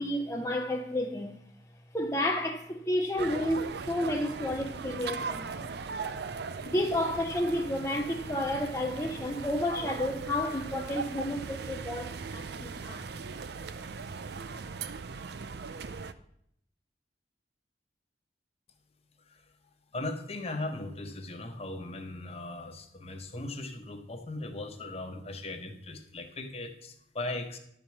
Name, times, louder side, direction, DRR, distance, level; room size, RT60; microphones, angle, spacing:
voice 1, 0.0-1.4 1.9-5.7 6.7-13.1, left 1 dB, 15° left, 0.6 m, -31 dB
sound 1, 3.2-16.1, right 5 dB, 65° right, 0.5 m, -39 dB
voice 2, 19.9-27.6, left 2 dB, 35° left, 1.1 m, -38 dB
11.5 x 4.8 x 7.1 m
head